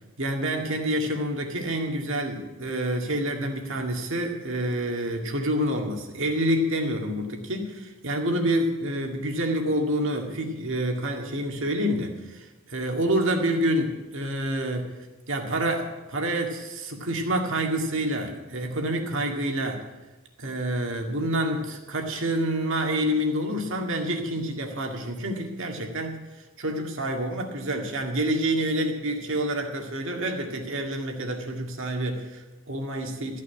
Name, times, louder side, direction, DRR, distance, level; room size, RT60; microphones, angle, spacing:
voice 1, 0.2-14.9 15.3-19.9 20.4-26.2 26.6-33.4, right 1 dB, 60° right, 3 dB, 2.0 m, -28 dB
14.0 x 6.5 x 9.9 m, 1.1 s
head